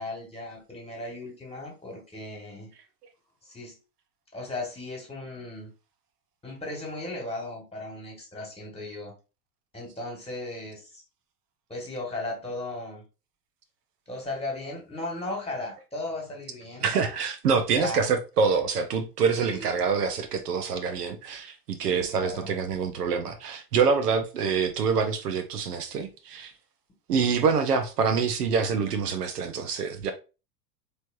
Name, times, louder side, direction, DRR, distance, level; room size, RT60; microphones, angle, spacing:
voice 1, 0.0-2.7 3.4-3.8 4.3-5.7 6.4-9.1 9.7-11.0 11.7-13.0 14.1-16.9 17.7-18.1 19.3-19.7 21.9-22.5, left 2 dB, 10° left, 1.7 m, -36 dB
voice 2, 16.8-26.5 27.1-30.1, right 5 dB, 70° right, 0.8 m, -26 dB
4.2 x 3.3 x 2.6 m
figure-of-eight pair, 90°, 49 cm